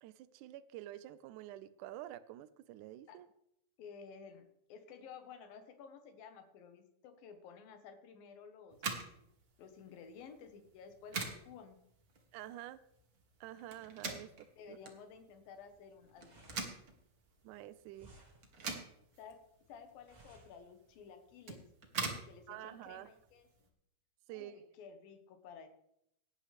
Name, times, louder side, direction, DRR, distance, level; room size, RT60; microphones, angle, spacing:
voice 1, 0.0-3.3 12.3-12.8 13.4-14.8 17.4-18.1 18.6-18.8 22.5-23.1 24.3-24.7, right 13 dB, 85° right, 12 dB, 1.8 m, -49 dB
voice 2, 3.8-4.4 4.7-8.9 9.6-11.8 14.6-16.7 19.2-19.4 19.7-21.6 22.2-23.7 24.3-25.7, left 6 dB, 80° left, 7 dB, 3.0 m, -54 dB
sound 1, 8.7-23.7, right 4 dB, 55° right, 1.0 m, -45 dB
sound 2, 15.6-21.1, equal, 20° right, 1.1 m, -62 dB
17.0 x 9.9 x 3.4 m, 0.78 s
omnidirectional pair, 4.1 m